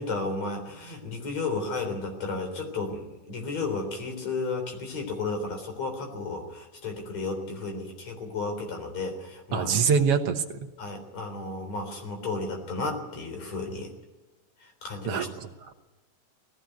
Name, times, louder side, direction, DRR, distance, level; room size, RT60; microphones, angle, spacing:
voice 1, 0.0-9.7 10.8-13.9 14.8-15.3, left 3 dB, 60° left, 5 dB, 4.9 m, -33 dB
voice 2, 9.5-10.4 15.1-15.7, right 6 dB, 60° right, 6 dB, 2.0 m, -25 dB
19.0 x 16.0 x 9.2 m, 1.2 s
omnidirectional pair, 3.4 m